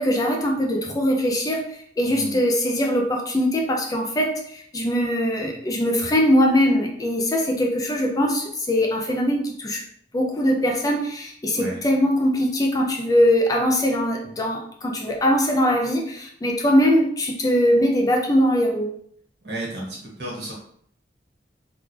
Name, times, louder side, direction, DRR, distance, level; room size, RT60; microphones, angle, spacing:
voice 1, 0.0-9.8 10.1-18.9, equal, 20° left, 1 dB, 0.4 m, -21 dB
voice 2, 2.0-2.4 11.5-11.8 19.4-20.5, right 1 dB, 70° right, -3 dB, 1.4 m, -32 dB
3.5 x 2.4 x 3.2 m, 0.64 s
head